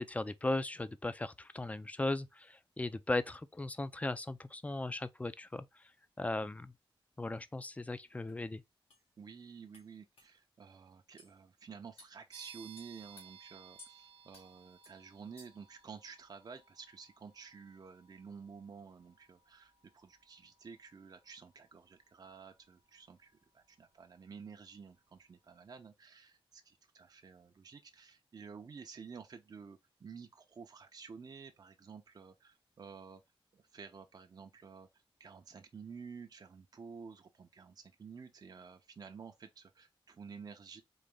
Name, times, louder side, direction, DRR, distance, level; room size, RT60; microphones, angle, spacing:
voice 1, 0.0-5.8 6.2-6.7 7.2-8.6, left 2 dB, 15° left, 0.4 m, -37 dB
sound 1, 8.3-8.4 8.9-9.0 9.7-9.9 10.2-10.3 11.2-11.3 12.0-12.2 12.8-13.3 13.8-13.9 14.3-14.5 14.8-15.0 15.4-15.7, left 2 dB, 90° left, 1.7 m, -57 dB
voice 2, 9.2-33.2 33.5-40.8, right 5 dB, 45° right, 0.5 m, -52 dB
sound 2, 12.3-24.8, right 8 dB, 80° right, 0.7 m, -61 dB
3.9 x 3.0 x 3.4 m
wide cardioid pair, 120°, 9 cm